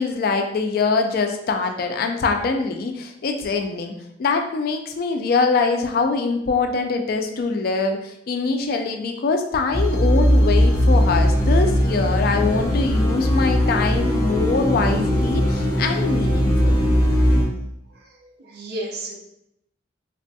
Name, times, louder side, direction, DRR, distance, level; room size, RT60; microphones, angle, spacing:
voice 1, 0.0-3.9 4.2-16.8, left 4 dB, 50° left, 5 dB, 0.3 m, -23 dB
sound 1, 9.7-17.4, equal, 15° left, 0.7 m, -19 dB
voice 2, 17.9-19.2, right 1 dB, 55° right, 1 dB, 0.5 m, -33 dB
3.2 x 2.2 x 2.6 m, 0.78 s
head